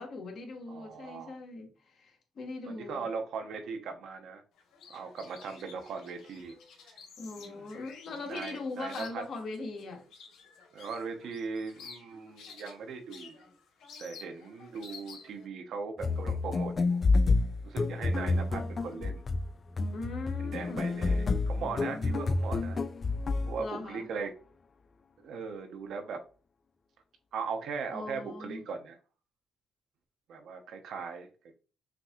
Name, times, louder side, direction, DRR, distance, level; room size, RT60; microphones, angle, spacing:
voice 1, 0.0-3.1 7.2-10.0 18.1-18.7 19.9-20.9 21.6-22.2 23.6-24.1 27.9-28.6, left 3 dB, 55° left, 1.2 m, -40 dB
voice 2, 0.7-1.3 2.7-4.4 4.9-6.5 7.4-7.7 8.1-9.2 10.7-13.4 14.0-17.0 17.6-19.2 20.4-22.8 23.5-24.3 25.2-26.2 27.3-29.0 30.3-31.3, right 5 dB, 75° right, 0.9 m, -39 dB
sound 1, 4.6-15.5, left 5 dB, 80° left, 1.1 m, -52 dB
sound 2, 16.0-23.6, left 3 dB, 40° left, 0.3 m, -29 dB
5.9 x 2.7 x 2.4 m
cardioid pair, 90°, 0 cm